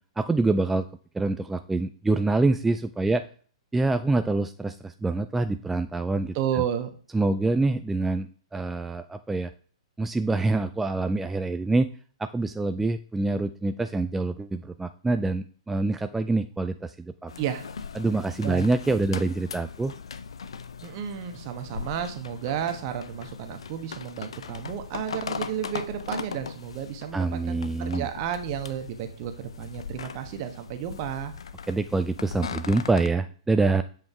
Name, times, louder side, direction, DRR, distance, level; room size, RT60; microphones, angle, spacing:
voice 1, 0.2-0.9 1.1-3.2 3.7-6.6 7.1-9.5 10.0-11.9 12.2-17.3 18.0-19.9 27.1-28.1 31.7-33.8, right 3 dB, 5° right, 10 dB, 0.3 m, -26 dB
voice 2, 6.3-6.9 17.4-17.7 18.4-18.7 20.8-31.3, right 9 dB, 40° right, 7 dB, 1.2 m, -32 dB
sound 1, 17.3-33.1, left 6 dB, 70° left, 0.6 m, -39 dB
7.7 x 5.2 x 3.6 m, 0.43 s
figure-of-eight pair, 115°, 3 cm